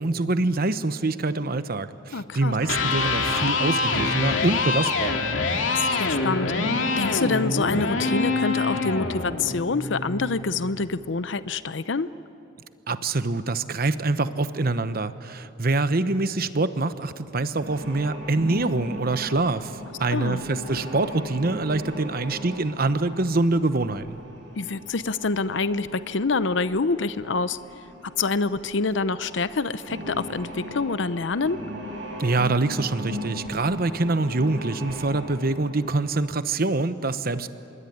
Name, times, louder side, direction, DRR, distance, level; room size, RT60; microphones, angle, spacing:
voice 1, 0.0-5.4 12.9-24.2 32.2-37.5, right 2 dB, 50° right, 12 dB, 1.0 m, -25 dB
voice 2, 2.1-2.5 5.7-6.5 7.0-12.1 20.1-20.4 24.6-27.6 28.2-31.6, left 4 dB, 70° left, 14 dB, 0.7 m, -26 dB
Electric guitar, 2.5-10.6, left 3 dB, 90° left, 2.5 m, -25 dB
sound 1, 17.6-36.2, equal, 75° right, 7.7 m, -38 dB
26.0 x 22.5 x 9.5 m, 2.8 s
head